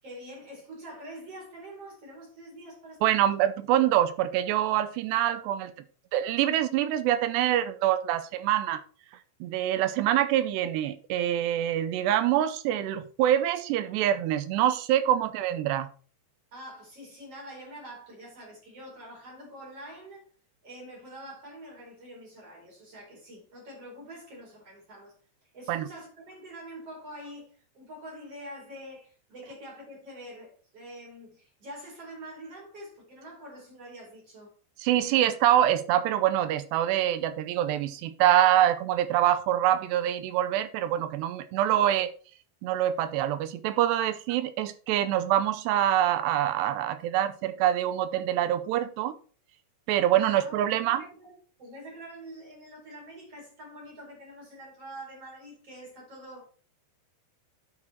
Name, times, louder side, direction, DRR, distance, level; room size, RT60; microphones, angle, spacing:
voice 1, 0.0-3.6 16.5-20.3 20.6-25.1 25.5-34.5 44.0-44.1 50.1-51.3 51.6-56.4, right 1 dB, 35° right, 5.4 m, -45 dB
voice 2, 3.0-5.7 6.1-8.8 9.4-15.9 25.7-25.9 34.8-42.1 42.6-49.2 49.9-51.0, right 12 dB, 80° right, 2.7 m, -25 dB
9.7 x 6.6 x 4.5 m
omnidirectional pair, 5.1 m